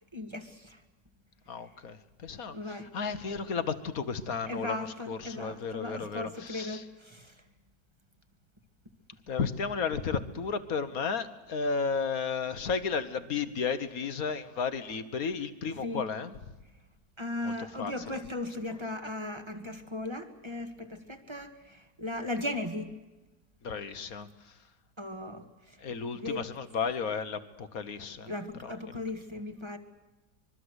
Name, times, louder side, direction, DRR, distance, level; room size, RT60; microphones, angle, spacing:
voice 1, 0.1-0.8 2.5-2.9 4.5-7.3 15.8-16.0 17.2-22.9 25.0-25.8 26.1-26.5 28.3-29.8, left 2 dB, 15° right, 7 dB, 1.8 m, -37 dB
voice 2, 1.5-6.8 9.3-16.4 17.4-18.2 23.6-24.5 25.8-28.3 28.6-28.7, left 5 dB, 60° left, 12 dB, 1.6 m, -33 dB
25.0 x 22.5 x 8.1 m, 1.1 s
omnidirectional pair, 1.7 m